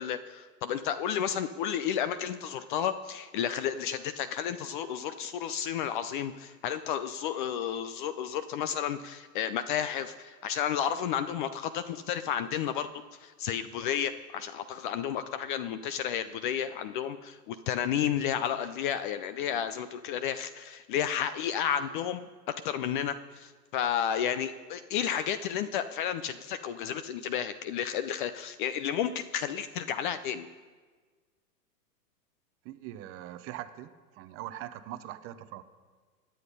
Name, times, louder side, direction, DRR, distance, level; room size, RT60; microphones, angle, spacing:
voice 1, 0.0-12.9 13.2-30.5, left 9 dB, 35° left, 12 dB, 0.5 m, -32 dB
voice 2, 32.6-35.6, right 13 dB, 25° right, 11 dB, 0.7 m, -42 dB
16.5 x 10.0 x 5.3 m, 1.5 s
hypercardioid pair, 125°, 49 cm